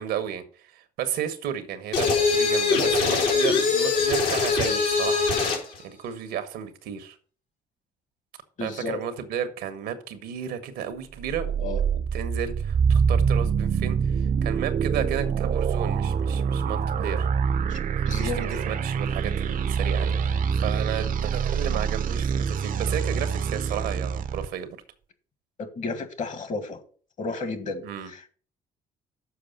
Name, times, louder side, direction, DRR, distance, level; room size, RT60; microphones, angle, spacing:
voice 1, 0.0-5.2 5.8-7.2 8.6-17.3 17.9-20.2 20.5-24.8 27.8-28.1, right 9 dB, 80° right, 1.2 m, -33 dB
sound 1, 1.9-5.7, left 4 dB, 75° left, 3.3 m, -22 dB
voice 2, 8.6-9.0 11.6-11.8 17.7-18.4 25.6-26.8 27.2-28.3, left 3 dB, 50° left, 1.8 m, -33 dB
sound 2, 11.2-24.5, right 6 dB, 55° right, 0.7 m, -25 dB
6.9 x 4.9 x 6.8 m
supercardioid pair, 70°, 16 cm